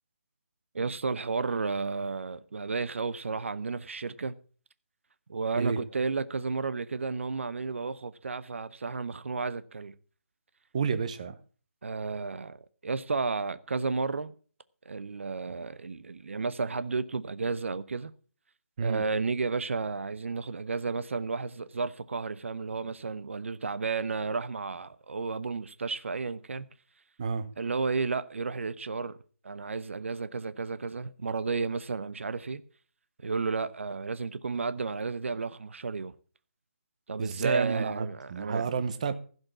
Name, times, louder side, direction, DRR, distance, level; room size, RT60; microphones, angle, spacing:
voice 1, 0.7-4.4 5.3-9.9 11.8-14.3 14.9-18.1 18.8-26.7 27.6-29.2 29.4-32.6 33.2-36.1 37.1-38.7, right 4 dB, 60° right, 0.7 m, -32 dB
voice 2, 10.7-11.4 18.8-19.0 27.2-27.5 37.2-39.1, right 5 dB, 30° right, 0.8 m, -30 dB
15.5 x 5.5 x 7.2 m
hypercardioid pair, 170°, 8 cm